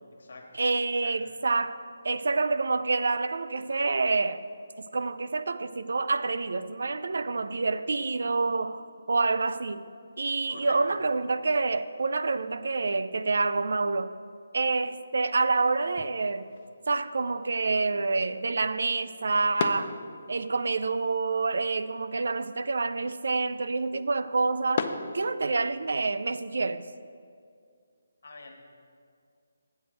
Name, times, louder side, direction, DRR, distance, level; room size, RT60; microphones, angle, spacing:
voice 1, 0.5-1.8 2.0-4.4 4.8-9.9 10.2-14.2 14.5-16.5 16.9-19.9 20.3-24.9 25.1-26.8, right 3 dB, 70° right, 0.3 m, -27 dB
sound 1, 15.8-25.9, left 5 dB, 40° left, 0.5 m, -40 dB
voice 2, 28.2-28.5, left 3 dB, 65° left, 1.2 m, -43 dB
8.0 x 4.5 x 6.4 m
figure-of-eight pair, 160°, 0 cm